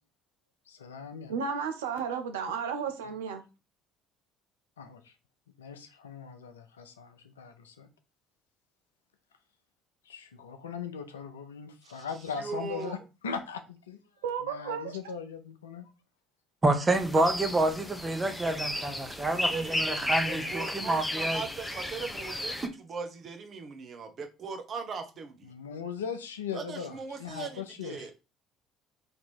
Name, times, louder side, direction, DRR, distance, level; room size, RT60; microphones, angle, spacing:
voice 1, 0.7-1.4 4.8-5.1 5.6-7.9 10.1-13.0 13.2-14.0 14.4-15.9 25.4-28.1, left 6 dB, 85° left, 0.5 m, -39 dB
voice 2, 1.3-3.4 14.2-14.9, right 6 dB, 80° right, 0.6 m, -33 dB
voice 3, 12.4-13.0 19.3-25.5 26.5-28.1, right 4 dB, 45° right, 0.9 m, -39 dB
voice 4, 16.6-21.4, right 2 dB, 25° right, 1.1 m, -28 dB
sound 1, 16.9-22.7, left 1 dB, 10° left, 0.8 m, -34 dB
3.5 x 2.9 x 4.2 m
hypercardioid pair, 55°, 0 cm